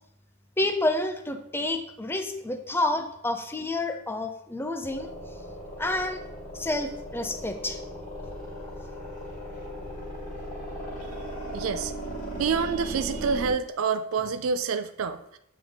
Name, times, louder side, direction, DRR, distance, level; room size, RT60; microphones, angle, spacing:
voice 1, 0.6-5.1 5.8-6.2 6.5-7.8, left 2 dB, 10° left, 6 dB, 0.5 m, -29 dB
sound 1, 4.9-13.5, equal, 40° left, 2.1 m, -37 dB
voice 2, 11.5-11.9 12.4-15.4, right 5 dB, 85° right, 10 dB, 0.4 m, -27 dB
7.8 x 3.9 x 3.6 m, 0.75 s
head